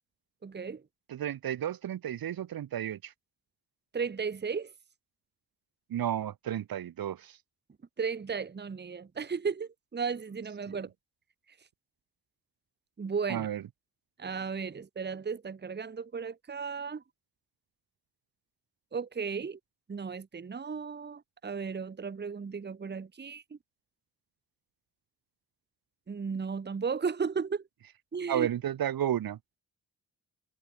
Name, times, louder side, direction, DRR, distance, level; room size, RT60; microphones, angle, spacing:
voice 1, 0.4-0.8 3.9-4.7 8.0-10.9 13.0-13.5 14.2-17.0 18.9-19.6 19.9-23.4 26.1-27.6 28.1-28.5, right 5 dB, 25° right, 1.1 m, -35 dB
voice 2, 1.1-3.1 5.9-7.4 10.7-10.8 13.3-13.6 28.3-29.4, right 10 dB, 65° right, 1.1 m, -32 dB
cardioid pair, 70°, 38 cm